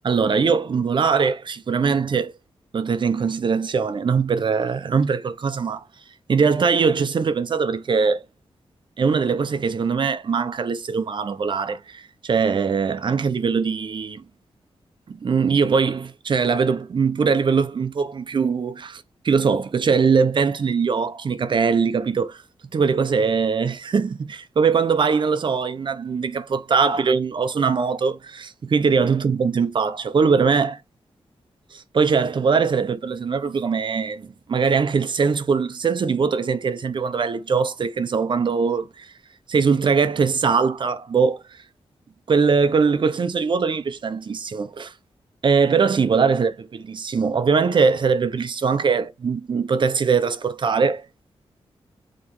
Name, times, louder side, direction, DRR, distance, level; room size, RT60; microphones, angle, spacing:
voice 1, 0.0-2.3 2.7-5.8 6.3-8.2 9.0-14.2 15.1-22.4 22.7-30.8 31.7-39.1 39.5-41.4 42.3-44.9 45.4-51.0, right 5 dB, 50° right, 0.8 m, -21 dB
8.7 x 4.2 x 3.2 m
wide cardioid pair, 115°, 10 cm